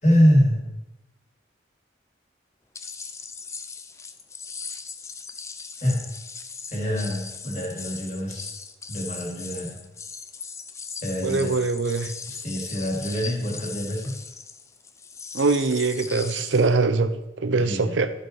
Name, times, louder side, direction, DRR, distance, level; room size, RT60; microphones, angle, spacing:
voice 1, 0.0-0.7 5.8-6.0 6.7-8.5 8.9-9.7 11.0-11.6 12.3-14.1 17.6-18.0, equal, 40° left, -3 dB, 3.1 m, -24 dB
sound 1, 2.7-16.7, left 5 dB, 15° left, 0.4 m, -39 dB
voice 2, 11.2-12.1 15.3-18.1, right 3 dB, 90° right, 11 dB, 0.7 m, -23 dB
12.5 x 6.7 x 4.7 m, 0.98 s
head